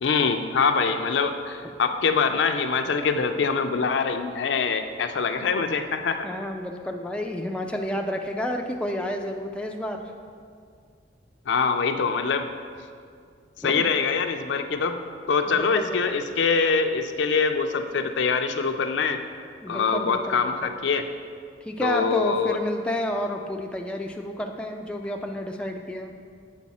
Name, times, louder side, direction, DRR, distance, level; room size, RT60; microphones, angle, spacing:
voice 1, 0.0-6.3 11.5-12.5 13.6-15.0 15.3-19.2 19.7-21.1 21.8-22.6, left 5 dB, 70° left, 7 dB, 0.4 m, -24 dB
voice 2, 6.2-10.0 13.6-13.8 15.5-16.0 19.6-20.7 21.6-26.1, left 1 dB, 5° left, 2 dB, 0.3 m, -30 dB
8.2 x 4.6 x 4.2 m, 2.2 s
head